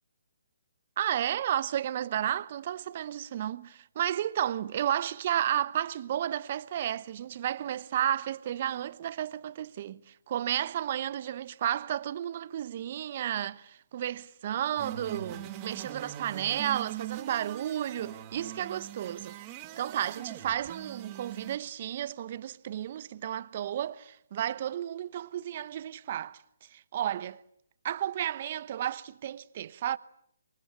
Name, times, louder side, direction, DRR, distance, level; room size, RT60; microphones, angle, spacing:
voice 1, 1.0-19.4 19.8-26.4 26.7-27.4 27.8-30.0, right 11 dB, 40° right, 1.0 m, -32 dB
sound 1, 14.8-21.6, right 12 dB, 25° right, 2.5 m, -42 dB
28.0 x 23.5 x 8.4 m
figure-of-eight pair, 145°, 0 cm